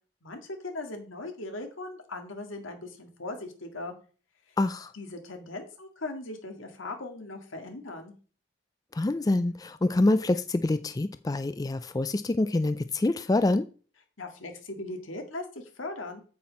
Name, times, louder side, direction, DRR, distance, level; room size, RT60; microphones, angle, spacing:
voice 1, 0.2-3.9 4.9-8.1 14.2-16.2, left 2 dB, 85° left, 4 dB, 2.0 m, -39 dB
voice 2, 4.6-4.9 8.9-13.7, left 2 dB, 20° left, 12 dB, 0.3 m, -26 dB
8.6 x 7.7 x 4.1 m, 0.39 s
head